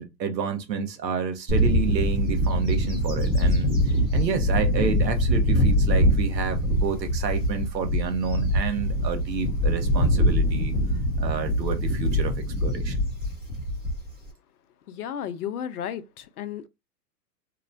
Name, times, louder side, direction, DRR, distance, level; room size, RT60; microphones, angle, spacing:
voice 1, 0.0-3.7 4.1-10.7 11.2-13.0, right 6 dB, 85° right, 0.9 m, -30 dB
Bird / Wind, 1.5-14.3, equal, 10° right, 0.6 m, -23 dB
voice 2, 14.9-16.7, left 9 dB, 65° left, 0.6 m, -33 dB
2.9 x 2.1 x 2.5 m
hypercardioid pair, 135°, 50 cm